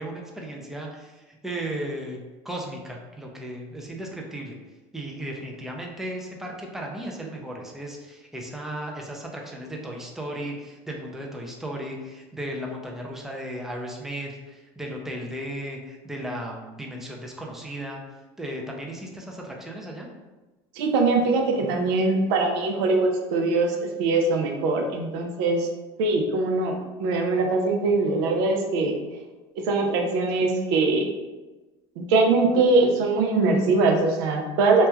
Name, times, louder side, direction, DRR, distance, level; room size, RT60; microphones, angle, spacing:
voice 1, 0.0-4.5 4.9-18.0 18.4-20.1, right 1 dB, 5° right, 0 dB, 0.4 m, -35 dB
voice 2, 20.8-25.7 26.0-28.9 29.7-31.0 32.0-34.9, right 3 dB, 75° right, 3 dB, 0.5 m, -22 dB
3.0 x 2.2 x 2.3 m, 1.2 s
supercardioid pair, 105°, 13 cm